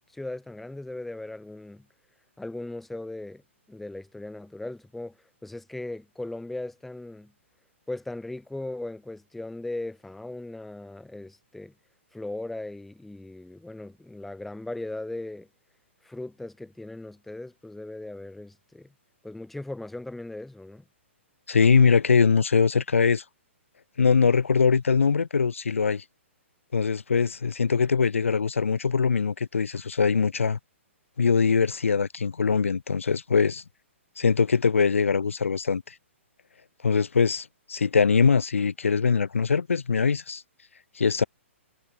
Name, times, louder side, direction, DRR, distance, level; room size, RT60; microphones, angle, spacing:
voice 1, 0.1-1.9 2.4-3.4 3.7-5.2 5.4-7.3 7.9-11.7 12.1-15.5 16.0-18.9 19.2-20.8, left 2 dB, ahead, 0.4 m, -38 dB
voice 2, 21.5-23.2 24.0-26.0 26.7-30.6 31.2-33.6 34.2-35.9 36.8-40.4 41.0-41.2, left 5 dB, 75° left, 0.4 m, -22 dB
figure-of-eight pair, 120°, 7 cm